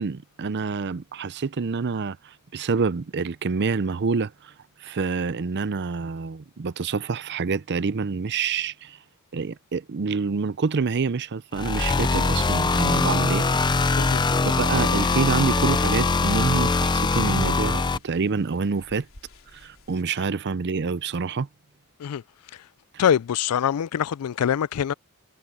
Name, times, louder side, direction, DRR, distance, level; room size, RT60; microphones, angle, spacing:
voice 1, 0.0-4.5 4.8-9.0 9.3-13.4 14.4-19.1 19.5-21.5 22.9-23.0, right 5 dB, 50° right, 0.5 m, -27 dB
sound 1, 11.5-18.0, left 3 dB, 20° left, 0.5 m, -22 dB
sound 2, 13.4-20.0, left 1 dB, 65° left, 4.5 m, -52 dB
voice 2, 23.0-24.9, left 9 dB, 85° left, 0.4 m, -24 dB
head